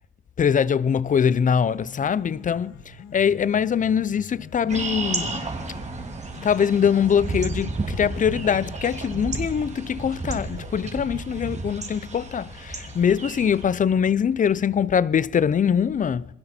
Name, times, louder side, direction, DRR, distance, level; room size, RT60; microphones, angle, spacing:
voice 1, 0.4-5.5 6.4-16.3, left 7 dB, 40° left, 0.7 m, -23 dB
Piano, 1.4-9.4, left 6 dB, 75° left, 2.0 m, -45 dB
sound 1, 4.7-13.6, right 3 dB, 35° right, 2.8 m, -32 dB
Hammer / Wood, 6.0-6.3 6.6-9.5 9.9-10.9, right 6 dB, 90° right, 6.0 m, -48 dB
28.5 x 20.5 x 4.5 m
cardioid pair, 90°, 20 cm